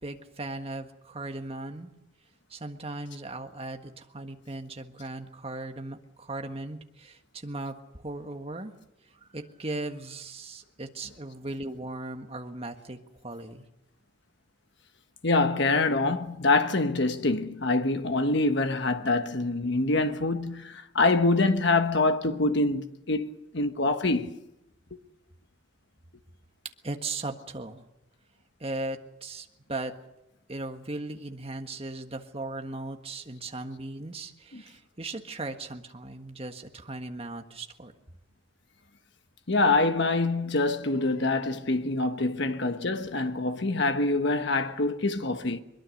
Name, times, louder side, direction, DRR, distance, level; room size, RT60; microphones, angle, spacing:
voice 1, 0.0-1.9 2.5-8.7 9.1-13.0 13.2-13.6 26.8-27.8 28.6-29.9 30.5-37.9, right 2 dB, 30° right, 1.5 m, -37 dB
voice 2, 15.2-24.4 24.9-25.0 34.5-34.6 39.5-45.6, left 2 dB, 55° left, 1.3 m, -25 dB
22.5 x 22.0 x 6.5 m
head